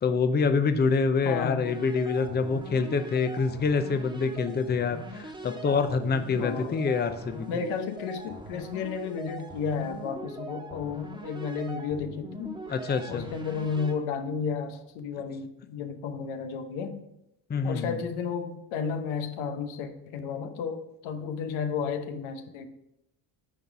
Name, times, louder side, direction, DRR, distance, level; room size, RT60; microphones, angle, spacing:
voice 1, 0.0-7.5 12.7-13.3 17.5-18.0, left 5 dB, 20° left, 8 dB, 0.6 m, -26 dB
voice 2, 1.2-1.7 3.8-3.9 6.4-6.8 7.5-12.6 13.1-17.0 17.6-22.7, left 6 dB, 80° left, 7 dB, 1.0 m, -33 dB
sound 1, 1.6-13.9, right 1 dB, 10° right, 1.3 m, -42 dB
9.6 x 3.9 x 4.8 m, 0.83 s
supercardioid pair, 85°, 47 cm